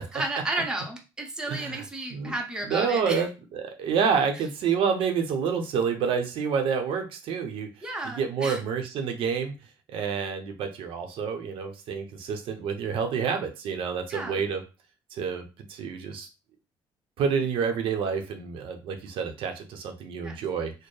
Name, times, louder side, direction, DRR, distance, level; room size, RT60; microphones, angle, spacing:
voice 1, 0.0-3.3 7.8-8.6 14.1-14.4 20.2-20.4, right 2 dB, 10° right, 1 dB, 0.7 m, -33 dB
voice 2, 1.5-1.8 2.1-2.3 2.6-7.7 8.0-9.5 9.9-14.6 15.1-16.3 17.2-20.7, right 6 dB, 75° right, 5 dB, 0.7 m, -28 dB
4.3 x 2.1 x 3.2 m, 0.29 s
cardioid pair, 140°, 9 cm